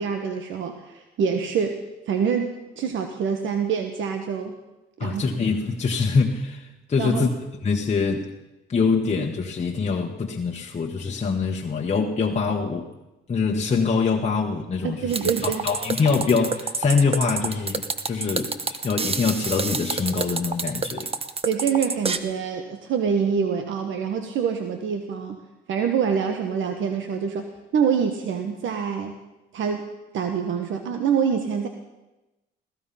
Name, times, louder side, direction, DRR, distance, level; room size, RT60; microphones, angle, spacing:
voice 1, 0.0-4.5 5.0-5.2 7.0-7.3 14.8-15.6 21.4-25.4 25.7-27.4 27.7-29.2 29.5-29.9 30.1-31.7, right 7 dB, 75° right, 6 dB, 1.2 m, -25 dB
voice 2, 5.0-7.3 7.6-8.3 8.7-12.9 13.3-21.1, left 4 dB, 35° left, 0 dB, 1.3 m, -24 dB
sound 1, 15.1-22.2, right 4 dB, 30° right, 1.1 m, -28 dB
16.0 x 15.0 x 5.6 m, 1.0 s
cardioid pair, 90°, 20 cm